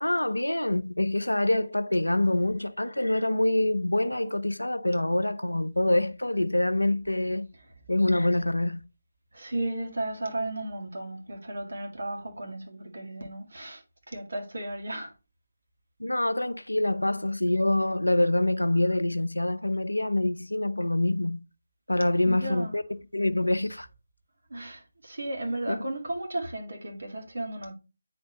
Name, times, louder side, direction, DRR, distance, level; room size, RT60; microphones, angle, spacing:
voice 1, 0.0-7.5 7.9-8.8 16.0-21.4 21.9-23.9 25.7-25.9, left 1 dB, 85° left, 0.6 m, -26 dB
voice 2, 9.3-13.8 14.1-15.1 22.3-22.8 24.5-27.7, right 1 dB, 65° right, 2.1 m, -34 dB
9.3 x 4.3 x 3.0 m
figure-of-eight pair, 155°, 0 cm